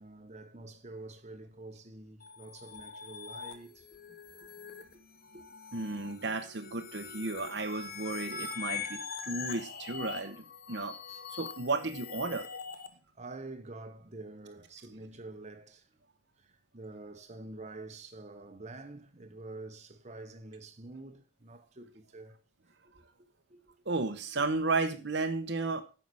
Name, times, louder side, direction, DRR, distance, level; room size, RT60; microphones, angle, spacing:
voice 1, 0.0-3.9 5.3-5.4 11.1-11.2 13.2-15.9 16.4-22.4 23.5-23.7, right 2 dB, 35° right, 1.1 m, -47 dB
sound 1, 2.2-12.9, left 6 dB, 50° left, 1.2 m, -43 dB
voice 2, 5.7-11.0 11.3-12.5 23.8-25.8, right 3 dB, 60° right, 1.0 m, -33 dB
9.6 x 5.8 x 6.3 m
head